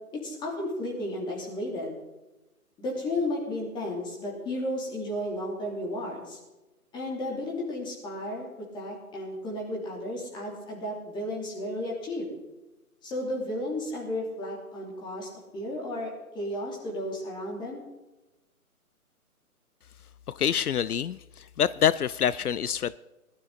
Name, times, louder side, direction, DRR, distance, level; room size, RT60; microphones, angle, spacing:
voice 1, 0.2-1.9 2.8-6.4 6.9-12.3 13.0-17.8, left 1 dB, 10° left, -2 dB, 3.0 m, -33 dB
voice 2, 20.3-23.0, left 9 dB, 75° left, 18 dB, 0.6 m, -26 dB
19.5 x 12.0 x 4.0 m, 1.0 s
figure-of-eight pair, 150°, 45 cm